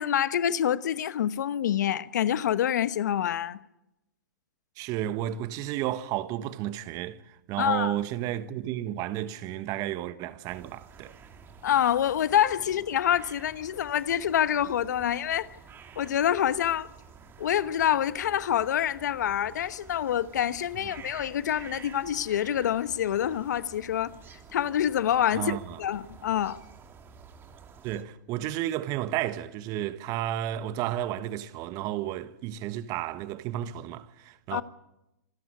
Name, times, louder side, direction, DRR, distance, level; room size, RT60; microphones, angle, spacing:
voice 1, 0.0-3.6 7.6-7.9 11.6-15.5 16.0-16.9 17.4-24.1 24.5-26.6 34.5-34.6, left 10 dB, 70° left, 1.1 m, -26 dB
voice 2, 4.8-11.1 25.3-25.8 27.8-34.6, right 13 dB, 35° right, 1.4 m, -32 dB
sound 1, 10.5-28.0, right 6 dB, 20° right, 2.6 m, -50 dB
27.0 x 15.0 x 9.8 m
hypercardioid pair, 120°, 10 cm